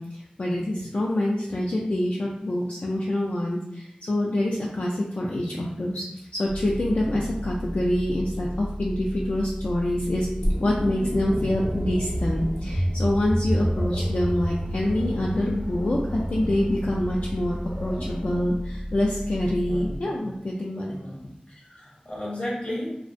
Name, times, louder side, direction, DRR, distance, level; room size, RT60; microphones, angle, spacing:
voice 1, 0.0-6.0 6.3-10.3 10.6-20.9, left 1 dB, 65° left, -4 dB, 0.3 m, -26 dB
sound 1, 6.5-20.0, equal, 75° right, 0.7 m, -35 dB
sound 2, 10.4-18.4, equal, 35° right, 0.5 m, -30 dB
voice 2, 19.7-20.0 20.9-22.9, left 1 dB, 45° left, -4 dB, 0.8 m, -34 dB
2.5 x 2.0 x 2.5 m, 0.81 s
wide cardioid pair, 60°, 3 cm